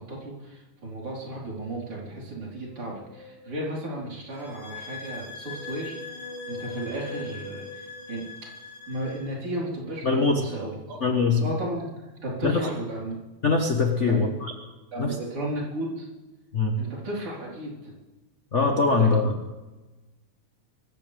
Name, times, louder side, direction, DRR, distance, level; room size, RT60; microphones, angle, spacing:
voice 1, 0.0-8.3 8.9-11.0 11.4-11.9 12.2-13.2 14.0-14.3 14.9-16.1 16.8-17.9 18.9-19.1, right 1 dB, 45° right, -4 dB, 5.2 m, -34 dB
sound 1, 2.4-4.0 4.8-8.7, left 1 dB, 20° right, 4.7 m, -43 dB
sound 2, 4.3-9.3, left 5 dB, 65° left, 6.5 m, -42 dB
voice 2, 10.0-10.4 11.0-11.5 12.4-12.6 13.4-14.5 15.0-15.2 16.5-16.8 18.5-19.3, left 4 dB, 45° left, 2 dB, 0.9 m, -22 dB
25.0 x 15.0 x 3.5 m, 1.1 s
omnidirectional pair, 3.6 m